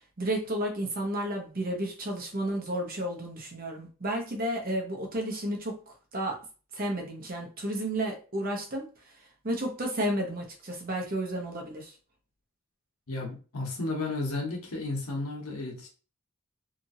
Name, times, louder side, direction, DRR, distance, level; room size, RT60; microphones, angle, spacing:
voice 1, 0.2-6.4 6.7-8.9 9.4-11.9, right 1 dB, 40° right, 1 dB, 0.8 m, -32 dB
voice 2, 13.1-15.9, left 2 dB, 85° left, 0 dB, 1.1 m, -33 dB
2.9 x 2.5 x 2.6 m, 0.36 s
head